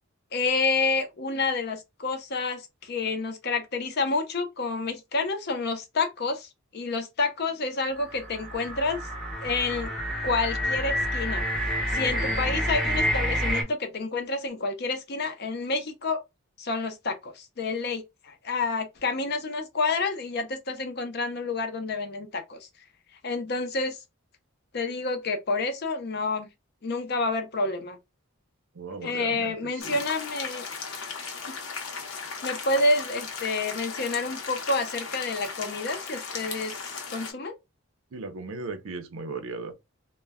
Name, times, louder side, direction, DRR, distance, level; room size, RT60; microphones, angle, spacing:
voice 1, 0.3-9.0 9.4-9.9 10.2-16.2 16.6-22.7 23.2-24.0 24.7-26.5 26.8-28.0 29.0-30.6 31.5-31.6 32.4-37.5, left 3 dB, 50° left, 0.5 m, -29 dB
sound 1, 8.0-13.6, equal, ahead, 0.6 m, -28 dB
voice 2, 28.7-30.0 38.1-39.7, right 3 dB, 70° right, 0.5 m, -37 dB
sound 2, 29.8-37.3, left 5 dB, 75° left, 0.8 m, -37 dB
2.2 x 2.1 x 3.4 m
head